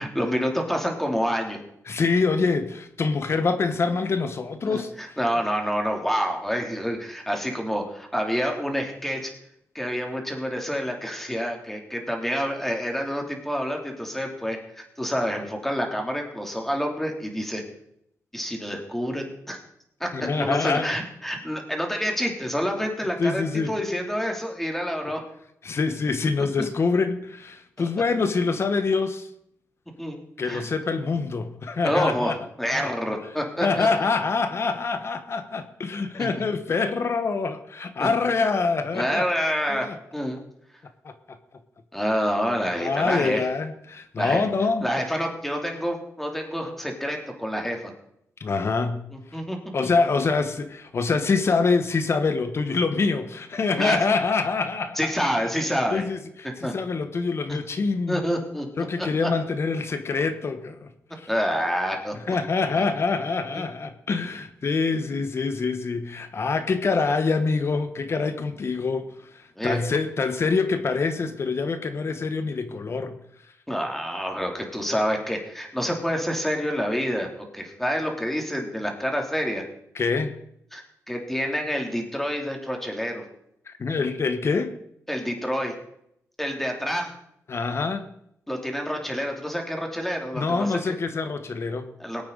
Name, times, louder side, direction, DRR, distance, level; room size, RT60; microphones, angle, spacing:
voice 1, 0.0-1.6 4.7-9.3 9.7-17.6 18.3-19.6 20.0-20.1 20.4-25.2 26.6-26.7 27.8-27.9 30.0-30.6 31.8-32.3 32.6-33.9 36.2-36.3 38.0-38.1 38.9-39.9 40.1-40.4 41.9-43.4 44.2-44.4 44.8-47.9 49.1-49.6 53.8-54.0 55.0-56.1 56.6-56.7 58.1-58.7 59.0-59.3 61.3-62.1 63.5-63.6 69.6-69.8 73.7-77.3 77.5-79.6 80.7-83.2 85.1-85.7 86.4-87.1 88.5-90.9 92.0-92.2, equal, 5° left, 2 dB, 2.8 m, -27 dB
voice 2, 1.9-4.9 20.1-20.9 23.2-23.7 25.6-29.3 30.4-32.3 32.7-32.9 33.6-39.2 39.7-39.9 41.0-41.1 42.8-44.8 48.4-49.0 49.3-49.4 49.7-55.0 55.9-58.2 58.8-60.9 61.2-61.3 62.3-69.1 69.6-73.2 79.9-80.4 83.7-84.7 87.5-88.1 90.3-91.9, left 4 dB, 50° left, 9 dB, 1.2 m, -25 dB
20.0 x 8.7 x 4.0 m, 0.75 s
cardioid pair, 80°, 6 cm